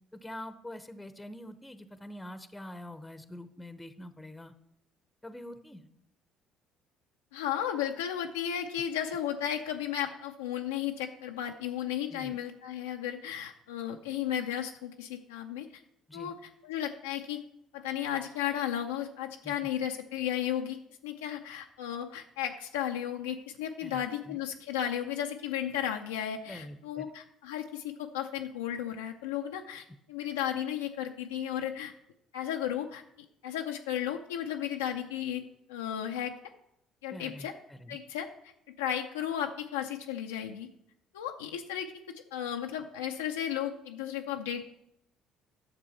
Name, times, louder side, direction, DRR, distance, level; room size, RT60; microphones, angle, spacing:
voice 1, 0.1-4.5 5.2-5.9 12.1-12.4 16.1-16.4 19.4-19.5 23.8-24.4 26.5-27.1 37.1-38.0, left 1 dB, 10° left, 11 dB, 0.8 m, -45 dB
voice 2, 7.3-15.7 16.1-17.4 17.7-20.8 21.0-31.9 32.3-33.0 33.4-35.4 35.7-36.4 37.0-37.5 37.9-38.5 38.8-40.7 41.1-41.9 42.3-44.7, left 10 dB, 90° left, 3 dB, 0.5 m, -34 dB
10.0 x 6.8 x 4.3 m, 0.77 s
hypercardioid pair, 60°, 0 cm